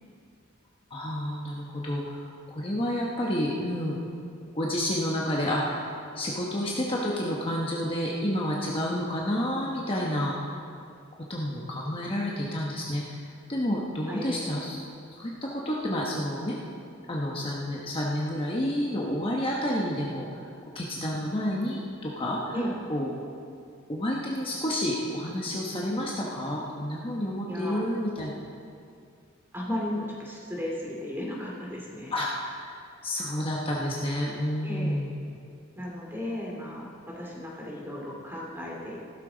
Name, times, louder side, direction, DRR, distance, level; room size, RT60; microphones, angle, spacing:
voice 1, 0.9-4.0 4.5-5.9 6.1-10.5 11.3-13.2 13.5-14.8 15.1-16.6 17.1-20.3 20.7-22.5 22.9-23.1 23.9-28.3 32.1-32.7 33.0-35.1, equal, 25° left, -3 dB, 1.1 m, -30 dB
voice 2, 14.1-14.4 22.5-22.7 27.5-27.9 29.5-32.1 34.6-35.0 35.8-39.0, left 1 dB, 10° right, -3 dB, 2.5 m, -35 dB
15.0 x 13.0 x 4.0 m, 2.4 s
head